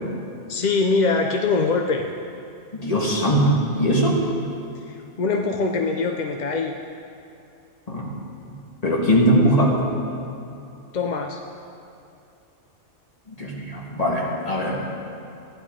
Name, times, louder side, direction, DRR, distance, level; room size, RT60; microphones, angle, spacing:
voice 1, 0.5-2.1 4.9-6.8 10.9-11.4, left 4 dB, 55° left, 3 dB, 0.5 m, -23 dB
voice 2, 2.7-4.2 7.9-8.1 8.8-9.8 13.4-14.9, equal, 30° left, -2 dB, 1.6 m, -20 dB
14.0 x 11.0 x 3.7 m, 2.6 s
omnidirectional pair, 1.3 m